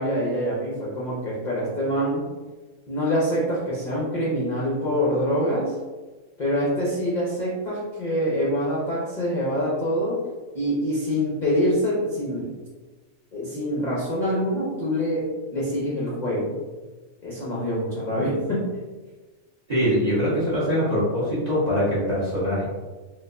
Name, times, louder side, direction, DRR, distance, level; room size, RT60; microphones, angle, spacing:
voice 1, 0.0-2.2 2.9-5.8 6.4-10.2 10.5-12.5 13.3-16.6 17.2-18.7, equal, 45° left, -6 dB, 0.6 m, -25 dB
voice 2, 19.7-22.7, equal, 30° right, -10 dB, 1.3 m, -23 dB
4.2 x 2.3 x 2.5 m, 1.3 s
omnidirectional pair, 1.5 m